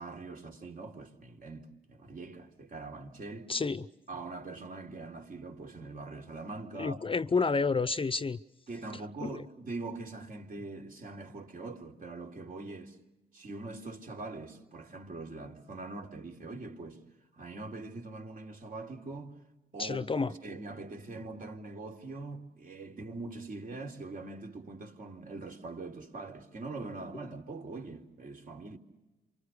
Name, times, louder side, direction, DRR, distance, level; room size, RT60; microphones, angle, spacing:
voice 1, 0.0-3.5 4.1-7.2 8.7-13.0 13.3-17.0 17.3-19.3 19.7-28.8, right 3 dB, 50° right, 3.6 m, -43 dB
voice 2, 3.5-3.8 6.8-8.4 9.2-9.4 19.8-20.3, left 4 dB, 30° left, 0.7 m, -29 dB
28.0 x 24.5 x 6.7 m
supercardioid pair, 60°, 18 cm